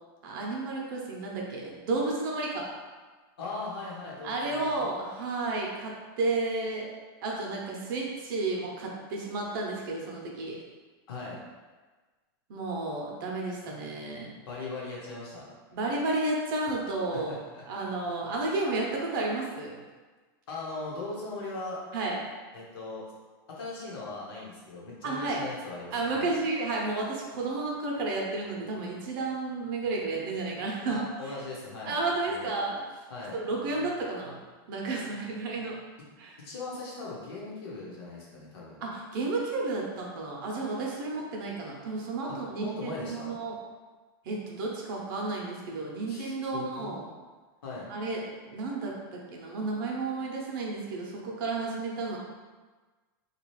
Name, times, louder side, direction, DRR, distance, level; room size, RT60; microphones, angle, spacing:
voice 1, 0.2-2.7 4.2-6.9 7.2-10.6 12.5-14.3 15.7-17.4 17.7-19.7 21.9-22.2 25.0-25.4 25.9-31.0 31.9-32.8 33.3-34.4 34.7-35.8 36.2-36.4 38.8-43.5 44.2-47.0 47.9-52.2, right 3 dB, 60° right, -2 dB, 0.7 m, -32 dB
voice 2, 3.4-4.9 11.1-11.4 14.4-15.5 17.1-17.6 20.5-21.8 22.5-23.0 23.5-26.3 30.9-32.0 32.3-32.5 33.1-33.4 36.4-38.8 42.6-43.4 46.1-46.9 47.6-47.9, left 3 dB, 85° left, -5 dB, 1.1 m, -39 dB
2.9 x 2.3 x 3.1 m, 1.3 s
supercardioid pair, 155°, 12 cm